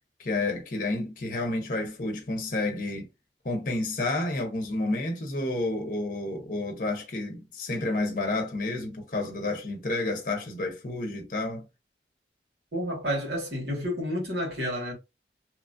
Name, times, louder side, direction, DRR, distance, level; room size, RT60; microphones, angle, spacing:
voice 1, 0.2-3.1 3.4-11.7, left 2 dB, 50° left, 0.7 m, -30 dB
voice 2, 12.7-14.9, equal, 70° right, 1.5 m, -30 dB
2.9 x 2.4 x 2.5 m
head